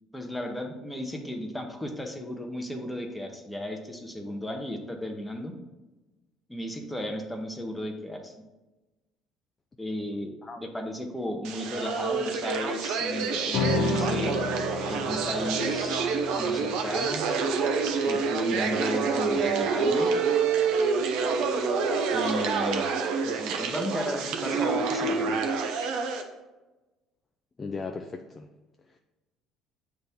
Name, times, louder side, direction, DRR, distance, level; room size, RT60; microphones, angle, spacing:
voice 1, 0.1-5.5 6.5-8.3 9.8-14.4 14.8-16.0 16.4-17.2 18.0-20.1 22.1-22.9 23.2-25.5, left 1 dB, 5° left, 3 dB, 0.8 m, -34 dB
sound 1, 11.4-26.2, right 5 dB, 80° right, 0.7 m, -27 dB
sound 2, 13.5-20.3, left 3 dB, 55° left, 0.8 m, -33 dB
voice 2, 27.6-28.5 28.9-29.0, left 4 dB, 20° left, 4 dB, 0.4 m, -37 dB
7.7 x 3.5 x 4.2 m, 1.1 s
cardioid pair, 150°, 0 cm